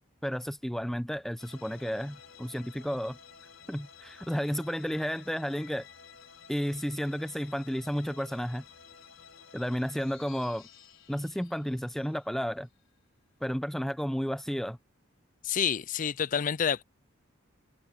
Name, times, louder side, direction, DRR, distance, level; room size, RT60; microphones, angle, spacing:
voice 1, 0.2-3.2 3.7-5.9 6.5-8.6 9.5-10.7 11.1-12.7 13.4-14.8, equal, ahead, 0.7 m, -32 dB
sound 1, 1.4-12.8, left 7 dB, 75° left, 4.6 m, -53 dB
voice 2, 15.4-16.8, left 8 dB, 40° left, 0.4 m, -28 dB
open air
head